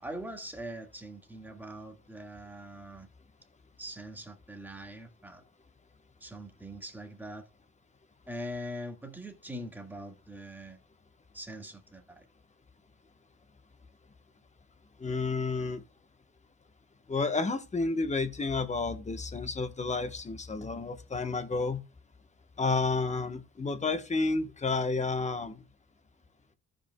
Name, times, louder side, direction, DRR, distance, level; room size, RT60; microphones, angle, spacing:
voice 1, 0.0-3.1 3.8-5.4 6.2-7.5 8.3-10.8 11.3-12.3, equal, 5° right, 1.6 m, -42 dB
voice 2, 15.0-15.8 17.1-21.8 22.6-25.6, left 3 dB, 25° left, 1.0 m, -31 dB
15.0 x 5.1 x 2.2 m
cardioid pair, 90°, 30 cm